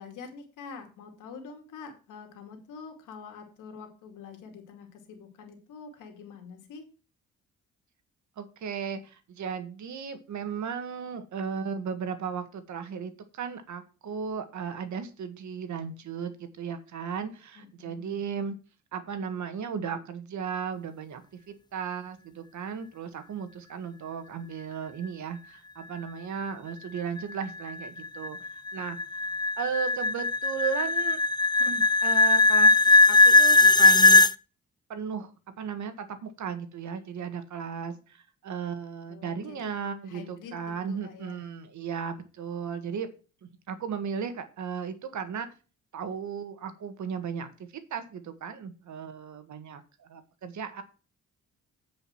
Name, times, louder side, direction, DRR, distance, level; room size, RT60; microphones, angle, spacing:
voice 1, 0.0-6.8 17.6-18.2 39.1-39.8 40.1-41.4, left 5 dB, 90° left, 3 dB, 2.5 m, -46 dB
voice 2, 8.4-18.5 18.9-21.2 21.5-28.4 28.7-29.2 29.6-31.2 31.6-32.8 33.1-34.3 34.9-35.3 35.6-43.1 43.7-45.5 45.9-47.5 47.9-50.8, right 6 dB, 70° right, 9 dB, 1.7 m, -35 dB
sound 1, 27.2-34.3, left 2 dB, 15° left, 0.6 m, -20 dB
9.2 x 5.2 x 5.9 m, 0.34 s
cardioid pair, 70°, 31 cm